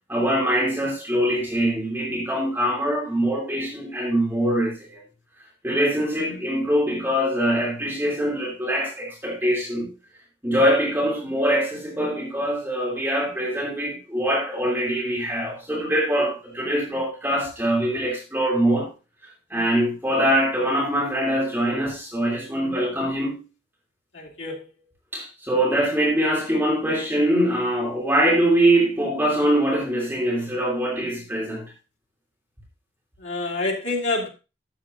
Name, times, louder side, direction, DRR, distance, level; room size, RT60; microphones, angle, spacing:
voice 1, 0.1-5.0 5.6-9.9 10.4-18.9 19.5-23.4 25.1-31.6, right 1 dB, 10° right, 3.0 m, -23 dB
voice 2, 24.1-24.6 33.2-34.3, left 2 dB, 80° left, 2.8 m, -27 dB
12.5 x 8.0 x 2.6 m
head